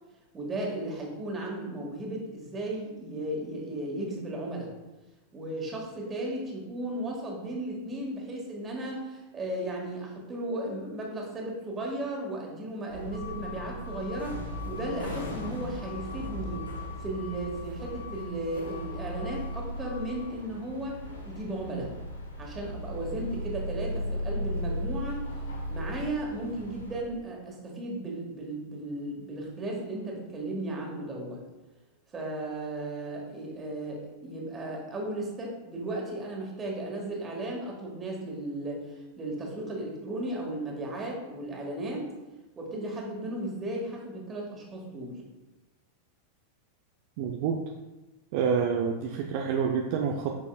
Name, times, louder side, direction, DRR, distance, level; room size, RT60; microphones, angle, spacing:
voice 1, 0.3-4.7 5.3-16.7 17.0-21.9 22.4-25.2 25.7-31.4 32.1-42.1 42.6-45.2, right 1 dB, 20° right, -1 dB, 1.9 m, -35 dB
sound 1, 12.9-27.0, left 1 dB, 70° left, 1.2 m, -37 dB
voice 2, 47.2-47.6 48.3-50.4, right 6 dB, 50° right, 2 dB, 0.6 m, -28 dB
8.5 x 6.2 x 2.4 m, 1.1 s
figure-of-eight pair, 90°, 0 cm